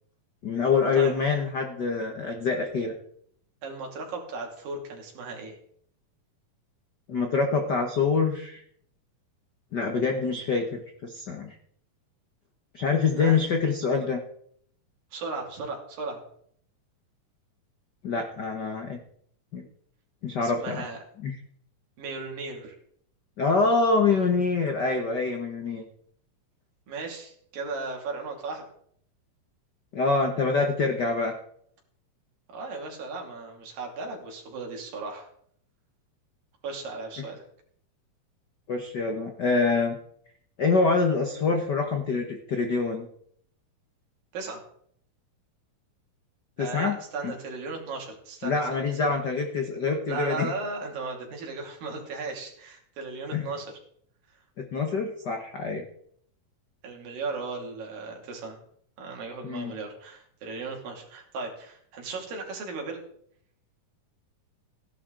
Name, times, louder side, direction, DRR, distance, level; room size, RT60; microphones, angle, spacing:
voice 1, 0.4-2.9 7.1-8.6 9.7-11.5 12.7-14.2 18.0-19.0 19.5-19.6 20.2-20.8 21.2-21.4 23.4-25.8 29.9-31.3 38.7-39.9 40.6-43.0 46.6-46.9 47.2-47.3 48.4-50.5 53.3-53.4 54.6-55.8 59.4-59.7, left 4 dB, 80° left, 4 dB, 0.9 m, -25 dB
voice 2, 3.6-5.6 13.1-13.4 15.1-16.2 20.4-21.0 22.0-22.8 26.9-28.6 32.5-35.3 36.6-37.4 44.3-44.6 46.6-49.1 50.1-53.7 54.3-54.4 56.8-58.6 59.0-63.0, right 3 dB, 85° right, 1 dB, 4.3 m, -36 dB
16.0 x 11.0 x 3.9 m, 0.65 s
omnidirectional pair, 3.9 m